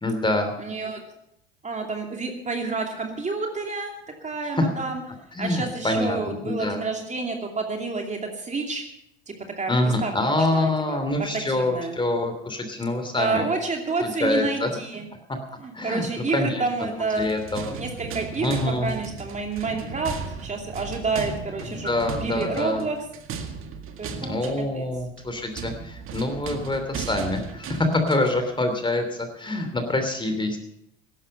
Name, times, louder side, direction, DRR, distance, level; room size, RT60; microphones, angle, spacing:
voice 1, 0.0-0.5 4.5-4.7 5.3-6.8 9.7-13.4 14.0-14.7 15.7-16.6 17.2-17.8 18.4-18.9 21.7-22.8 24.2-30.6, left 2 dB, 15° left, 7 dB, 2.9 m, -25 dB
voice 2, 0.6-1.0 1.6-3.9 4.2-5.0 5.4-8.8 9.3-12.0 13.2-15.1 15.6-17.3 17.7-21.9 22.2-23.0 24.0-24.9, right 3 dB, 20° right, 2 dB, 2.6 m, -29 dB
sound 1, 17.0-28.4, right 6 dB, 40° right, 1.9 m, -36 dB
16.0 x 12.5 x 5.5 m, 0.77 s
hypercardioid pair, 75°, 32 cm